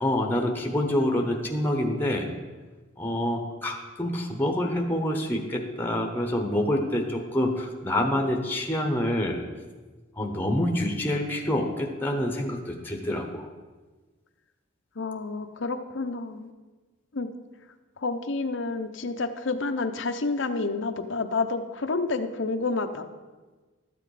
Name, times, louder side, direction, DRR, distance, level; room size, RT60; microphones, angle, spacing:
voice 1, 0.0-2.3 3.0-9.4 10.2-13.5, left 1 dB, 10° left, 3 dB, 1.0 m, -27 dB
voice 2, 15.0-16.5 17.1-17.3 18.0-23.1, left 3 dB, 65° left, 8 dB, 0.7 m, -29 dB
13.0 x 7.9 x 4.9 m, 1.3 s
head